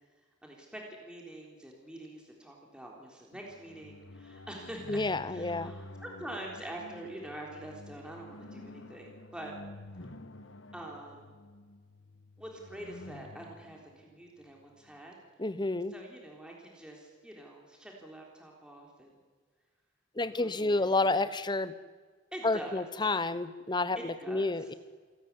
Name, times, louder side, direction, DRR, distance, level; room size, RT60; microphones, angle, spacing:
voice 1, 0.4-9.5 10.7-11.3 12.4-15.2 15.9-19.2 20.4-21.0 22.3-22.9 24.0-24.7, right 1 dB, 5° right, -1 dB, 3.7 m, -45 dB
sound 1, 3.3-15.0, left 2 dB, 75° left, 1.4 m, -50 dB
voice 2, 4.9-5.7 15.4-15.9 20.2-21.7 22.4-24.7, left 2 dB, 25° left, 13 dB, 0.9 m, -30 dB
28.0 x 13.5 x 9.7 m, 1.5 s
head